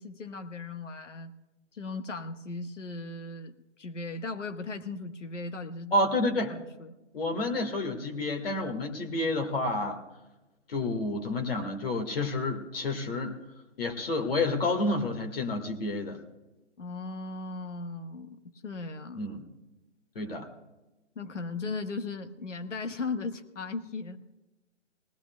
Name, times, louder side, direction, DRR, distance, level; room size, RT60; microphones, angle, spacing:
voice 1, 0.0-1.3 1.7-5.9 6.5-6.9 16.8-19.3 21.1-24.2, left 3 dB, 75° left, 8 dB, 1.5 m, -37 dB
voice 2, 5.9-6.5 7.1-10.0 10.7-13.4 13.8-16.2 19.2-19.4 20.2-20.5, left 2 dB, 50° left, 4 dB, 1.8 m, -29 dB
19.5 x 17.0 x 2.3 m, 1.1 s
hypercardioid pair, 160°, 37 cm